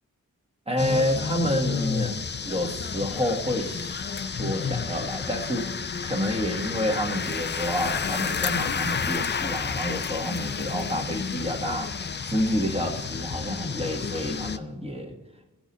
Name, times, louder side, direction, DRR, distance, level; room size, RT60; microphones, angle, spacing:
voice 1, 0.7-11.9 12.2-15.1, equal, 20° right, 1 dB, 1.5 m, -29 dB
sound 1, 0.8-14.6, left 6 dB, 35° left, 0.5 m, -31 dB
16.0 x 6.1 x 4.1 m, 1.0 s
wide cardioid pair, 140°, 31 cm